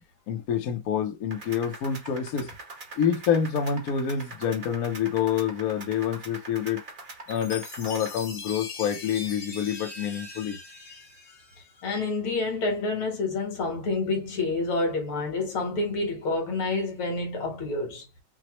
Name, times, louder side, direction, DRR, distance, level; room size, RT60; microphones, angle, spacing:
voice 1, 0.3-2.5 3.0-6.8 7.3-10.6, left 8 dB, 60° left, 1.0 m, -27 dB
sound 1, 1.3-8.2, right 3 dB, 45° right, 0.6 m, -43 dB
Chime, 7.3-11.9, left 4 dB, 40° left, 1.4 m, -41 dB
voice 2, 11.8-18.0, left 3 dB, 85° left, 2.5 m, -28 dB
6.0 x 2.1 x 3.0 m
omnidirectional pair, 2.3 m